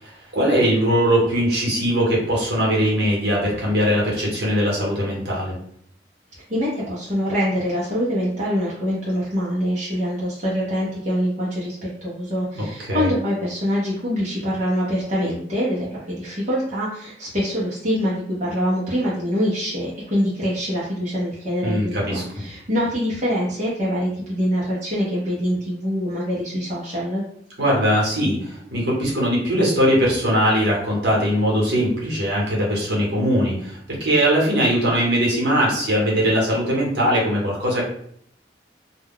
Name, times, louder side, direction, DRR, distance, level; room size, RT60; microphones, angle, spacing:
voice 1, 0.0-5.5 12.5-13.1 21.6-22.2 27.6-37.8, equal, 65° right, -3 dB, 1.1 m, -20 dB
voice 2, 6.5-27.2, equal, 40° right, -8 dB, 0.7 m, -24 dB
2.3 x 2.2 x 3.5 m, 0.66 s
head